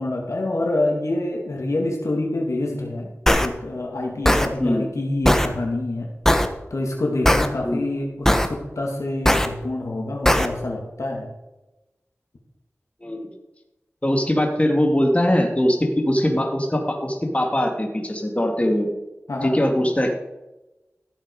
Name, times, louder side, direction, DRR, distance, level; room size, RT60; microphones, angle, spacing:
voice 1, 0.0-3.1 3.4-6.1 6.7-11.3 19.3-19.6, left 2 dB, 85° left, 0 dB, 2.6 m, -26 dB
sound 1, 3.3-3.5 4.2-4.5 5.2-5.5 6.2-6.5 7.2-7.5 8.3-8.5 9.3-9.5 10.3-10.5, equal, 10° left, 1.2 m, -17 dB
voice 2, 14.0-18.9 19.4-20.1, equal, 25° left, 2 dB, 2.4 m, -21 dB
14.5 x 7.9 x 5.0 m, 1.0 s
wide cardioid pair, 45°, 5 cm